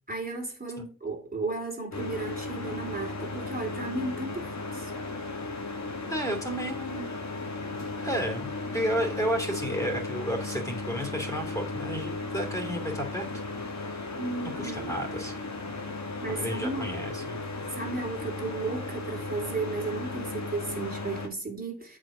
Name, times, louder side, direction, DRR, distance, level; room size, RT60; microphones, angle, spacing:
voice 1, 0.1-4.9 14.1-14.9 16.2-17.0 17.7-22.0, right 3 dB, 25° right, 2.9 m, -34 dB
sound 1, 1.9-21.3, left 3 dB, 50° left, 1.9 m, -35 dB
voice 2, 6.1-7.2 8.0-14.0 14.6-15.3 16.3-17.4, equal, 10° left, 2.7 m, -32 dB
7.5 x 5.0 x 4.9 m
cardioid pair, 60°, 34 cm